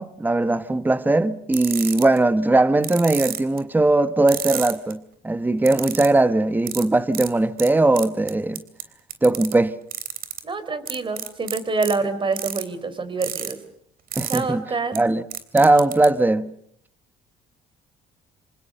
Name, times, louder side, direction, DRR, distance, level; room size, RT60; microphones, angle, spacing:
voice 1, 0.0-8.6 9.2-9.7 14.2-14.6 14.9-15.2 15.5-16.5, right 2 dB, 10° right, 1.2 m, -19 dB
sound 1, 1.5-2.2 2.8-3.6 4.3-4.9 5.6-6.1 6.7-6.8 7.1-7.3 7.6-7.7 7.9-8.8 9.1-9.5 9.9-10.4 10.9-11.9 12.3-12.6 13.2-13.5 14.1-14.4 15.0-15.1 15.3-16.1, right 10 dB, 60° right, 3.3 m, -30 dB
voice 2, 10.4-13.6 14.3-15.0, right 4 dB, 30° right, 4.0 m, -26 dB
27.0 x 27.0 x 6.8 m
cardioid pair, 110°, 17 cm